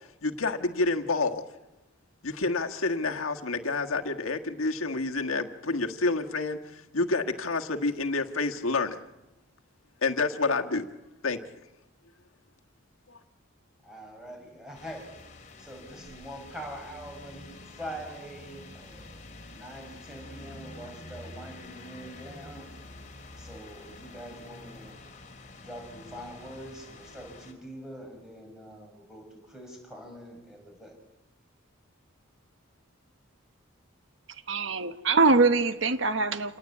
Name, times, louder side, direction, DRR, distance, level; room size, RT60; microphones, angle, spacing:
voice 1, 0.2-1.4 2.2-9.0 10.0-10.9 11.2-11.4 13.1-13.2, left 3 dB, 85° left, 4 dB, 1.6 m, -28 dB
voice 2, 13.8-15.1 15.6-19.2 19.5-22.7 23.4-25.0 25.6-30.9, right 1 dB, 5° right, 1 dB, 5.9 m, -44 dB
sound 1, 14.7-27.5, left 2 dB, 35° left, 2.6 m, -47 dB
voice 3, 34.5-36.6, right 3 dB, 65° right, 10 dB, 1.3 m, -23 dB
27.0 x 19.0 x 8.5 m, 1.0 s
head